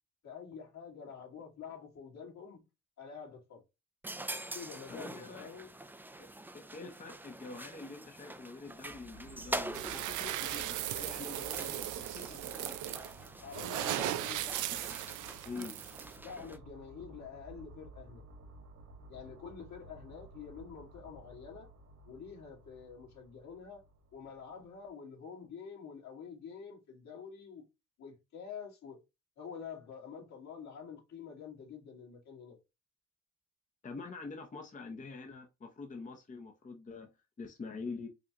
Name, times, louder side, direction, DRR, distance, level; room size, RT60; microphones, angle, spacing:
voice 1, 0.2-2.6 3.0-3.6 4.5-5.7 11.3-11.9 13.4-14.5 16.2-18.2 19.1-21.7 22.1-23.8 24.1-27.6 28.0-29.0 29.4-32.6, left 6 dB, 65° left, 2.2 m, -47 dB
sound 1, 4.0-16.6, right 1 dB, 5° right, 0.5 m, -45 dB
voice 2, 4.9-5.5 6.2-6.3 6.5-11.9 12.1-12.7 15.4-15.8 33.8-37.1 37.4-38.1, left 4 dB, 25° left, 0.8 m, -45 dB
sound 2, 8.7-24.9, right 2 dB, 60° right, 1.9 m, -55 dB
sound 3, 9.7-16.2, right 13 dB, 80° right, 0.5 m, -37 dB
5.0 x 2.4 x 2.9 m
cardioid pair, 90°, 30 cm